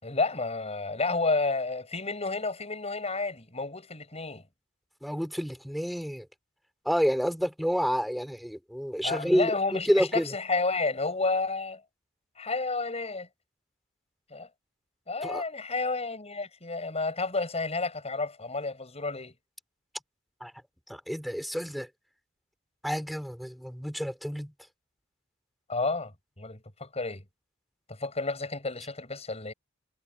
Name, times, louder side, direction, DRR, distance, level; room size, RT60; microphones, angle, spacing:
voice 1, 0.0-4.4 9.0-11.8 12.4-13.3 14.3-14.5 15.1-19.3 25.7-27.2 27.9-29.5, left 3 dB, 30° left, 6.9 m, -31 dB
voice 2, 5.0-6.3 6.9-9.5 9.9-10.3 15.2-15.4 20.4-20.5 20.9-21.9 22.8-24.5, equal, ahead, 4.2 m, -29 dB
head